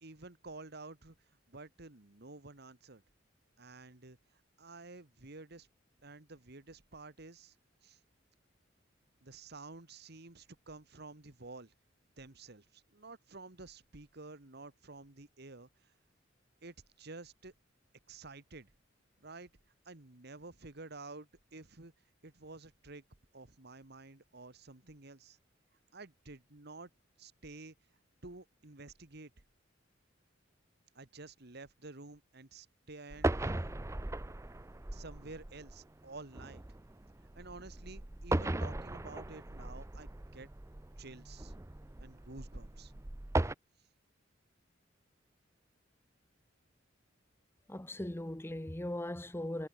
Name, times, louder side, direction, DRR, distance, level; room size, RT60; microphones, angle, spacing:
voice 1, 0.0-3.0 3.6-5.7 6.0-7.6 7.8-8.0 9.2-11.7 12.2-15.9 16.6-17.5 18.1-18.7 19.2-19.5 19.9-21.9 22.2-23.0 23.3-25.4 25.9-26.9 27.2-27.8 28.2-29.3 31.0-33.7 34.9-36.6 37.3-40.5 41.0-41.5 42.0-42.9, right 3 dB, 60° right, 1.9 m, -51 dB
sound 1, 33.1-43.5, right 2 dB, 15° right, 0.6 m, -38 dB
voice 2, 47.7-49.7, left 1 dB, 10° left, 0.9 m, -39 dB
head